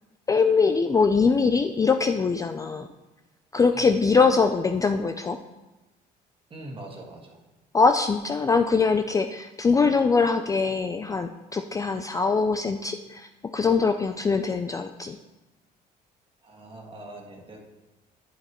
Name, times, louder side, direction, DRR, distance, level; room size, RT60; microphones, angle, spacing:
voice 1, 0.3-2.9 3.5-5.4 7.7-15.2, left 4 dB, 20° left, 7 dB, 0.3 m, -22 dB
voice 2, 6.5-7.4 16.4-17.6, right 1 dB, 30° right, 0 dB, 1.7 m, -42 dB
11.0 x 8.2 x 3.0 m, 1.1 s
cardioid pair, 110°, 17 cm